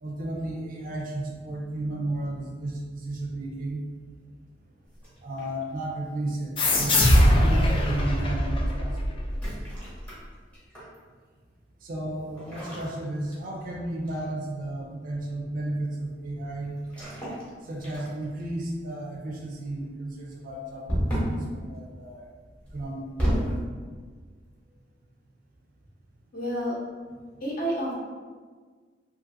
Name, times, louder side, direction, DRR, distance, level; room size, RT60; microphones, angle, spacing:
voice 1, 0.0-3.8 5.2-9.2 11.8-16.8 17.6-22.3 22.7-23.5, right 1 dB, 50° right, -1 dB, 0.4 m, -33 dB
sound 1, 4.9-5.7 6.9-7.2 9.3-11.0 12.3-13.7 14.1-14.4 16.8-17.5 17.8-18.4 20.9-21.5 22.7-23.6, equal, 10° left, 0.8 m, -31 dB
sound 2, 6.6-9.8, left 1 dB, 30° left, 0.3 m, -22 dB
voice 2, 26.3-26.7 27.4-27.9, equal, 50° left, -6 dB, 0.8 m, -29 dB
2.6 x 2.6 x 2.5 m, 1.5 s
head